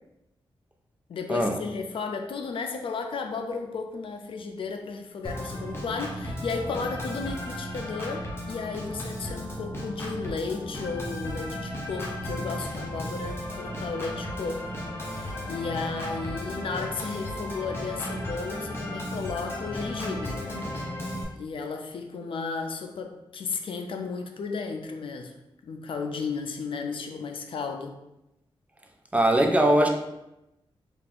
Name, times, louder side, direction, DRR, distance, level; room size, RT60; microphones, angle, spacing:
voice 1, 1.1-20.4 21.4-25.3 25.6-27.9, left 4 dB, 65° left, 4 dB, 0.4 m, -34 dB
Organ, 5.2-21.2, left 1 dB, 25° left, 0.8 m, -35 dB
voice 2, 29.1-29.9, right 1 dB, 15° right, 3 dB, 0.4 m, -20 dB
3.4 x 2.4 x 3.4 m, 0.90 s
wide cardioid pair, 115°, 10 cm